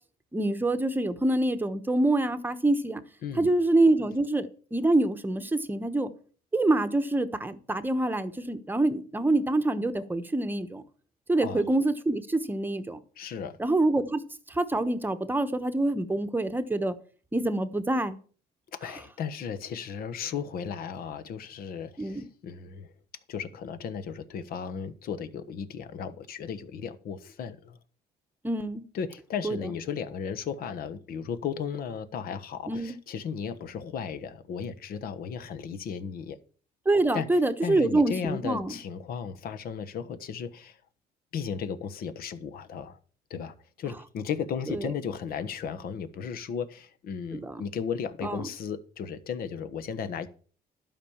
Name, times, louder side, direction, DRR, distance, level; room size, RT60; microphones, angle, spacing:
voice 1, 0.3-3.0 3.4-6.1 6.5-10.8 11.3-13.0 13.6-14.2 14.6-16.9 17.3-18.1 22.0-22.2 28.4-28.8 29.4-29.6 32.7-32.9 36.9-38.7 47.3-47.6 48.2-48.4, right 2 dB, 10° right, 1.0 m, -26 dB
voice 2, 3.2-3.5 11.4-11.6 13.2-13.6 18.7-22.9 23.3-27.8 28.9-36.4 37.1-37.3 37.6-40.8 41.3-43.0 43.3-50.3, left 7 dB, 65° left, 1.2 m, -35 dB
12.0 x 5.3 x 7.2 m
cardioid pair, 110°, 17 cm